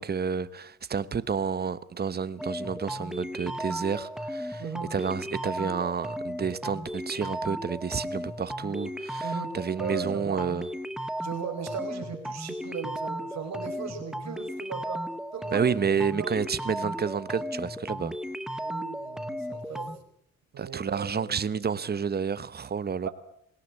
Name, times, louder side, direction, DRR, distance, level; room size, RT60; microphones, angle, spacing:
voice 1, 0.0-4.6 4.9-10.7 15.5-18.2 20.6-23.1, right 6 dB, 30° right, 1.1 m, -30 dB
sound 1, 2.4-20.0, equal, ahead, 1.2 m, -35 dB
voice 2, 4.6-4.9 9.2-10.5 11.2-15.1 15.3-15.7 16.2-16.4 18.6-19.9 20.5-21.3 23.0-23.1, right 7 dB, 60° right, 4.9 m, -38 dB
21.0 x 18.0 x 8.4 m
cardioid pair, 90°, 30 cm